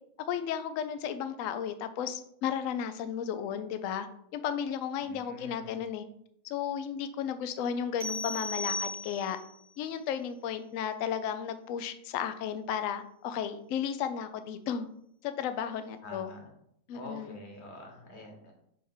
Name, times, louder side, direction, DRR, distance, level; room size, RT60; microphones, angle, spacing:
voice 1, 0.3-4.1 4.3-6.0 6.4-9.4 9.8-14.9 15.2-16.3 16.9-17.4, left 8 dB, 65° left, 10 dB, 0.8 m, -34 dB
voice 2, 5.0-5.8 16.0-16.5 16.9-18.5, left 2 dB, 40° left, 2 dB, 1.5 m, -46 dB
sound 1, 8.0-9.5, left 2 dB, 35° right, 0.3 m, -36 dB
5.4 x 3.4 x 5.5 m, 0.70 s
omnidirectional pair, 1.9 m